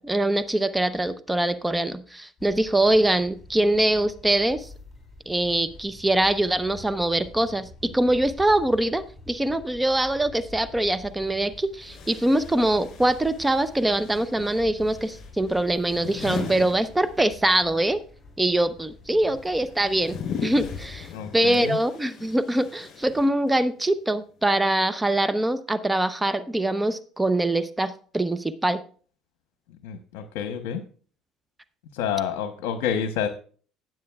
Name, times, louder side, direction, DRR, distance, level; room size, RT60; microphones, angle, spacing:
voice 1, 0.0-4.7 5.3-18.0 18.4-28.8, right 1 dB, 10° right, 12 dB, 0.7 m, -23 dB
sound 1, 2.4-21.0, left 2 dB, 15° left, 3.6 m, -47 dB
sound 2, 10.9-11.0 11.8-17.6 17.9-23.7, left 7 dB, 55° left, 4.1 m, -39 dB
voice 2, 21.1-21.8 29.8-30.8 31.9-33.3, left 8 dB, 85° left, 8 dB, 0.9 m, -28 dB
16.5 x 7.5 x 2.4 m, 0.42 s
supercardioid pair, 90°, 0 cm